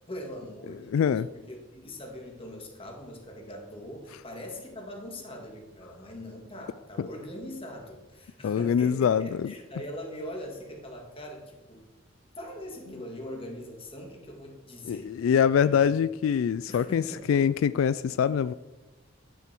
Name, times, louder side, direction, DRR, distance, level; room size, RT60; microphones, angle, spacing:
voice 1, 0.1-11.9 12.4-15.9 16.7-17.5, equal, 30° left, 2.2 m, -42 dB
voice 2, 0.9-1.3 7.0-7.1 8.4-9.5 14.8-18.5, left 7 dB, 80° left, 0.3 m, -24 dB
11.5 x 9.9 x 4.5 m
head